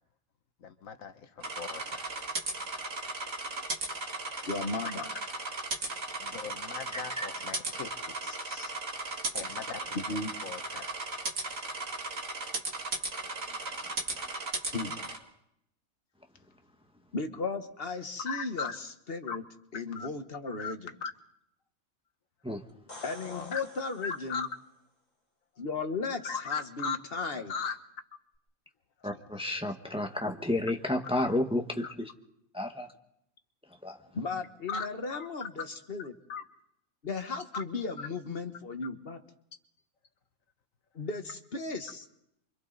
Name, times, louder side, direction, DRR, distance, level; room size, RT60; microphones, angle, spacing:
voice 1, 0.6-2.0 4.8-4.9 6.2-8.7 9.3-10.0 10.4-10.9 18.2-18.7 19.3-19.4 19.9-20.1 20.6-20.7 21.0-21.1 23.2-23.6 24.0-24.5 26.2-27.0 27.5-27.8 29.0-29.1 31.8-31.9 34.7-35.3 36.3-36.4 37.5-37.6, left 5 dB, 75° left, 8 dB, 1.5 m, -38 dB
sound 1, 1.4-15.2, right 2 dB, 75° right, 2.6 m, -36 dB
voice 2, 4.5-5.1 9.9-10.3 14.7-15.0 17.1-19.4 19.7-20.9 23.0-24.5 25.6-27.5 34.1-36.1 37.0-39.2 40.9-42.0, left 3 dB, 45° left, 7 dB, 1.5 m, -36 dB
voice 3, 6.9-7.3 22.4-22.6 29.0-32.1 32.5-32.9 33.8-34.0, left 1 dB, 5° right, 4 dB, 1.3 m, -31 dB
sound 2, 22.7-24.6 28.3-28.4, left 2 dB, 30° left, 2.5 m, -49 dB
28.5 x 25.0 x 4.0 m, 0.76 s
omnidirectional pair, 1.4 m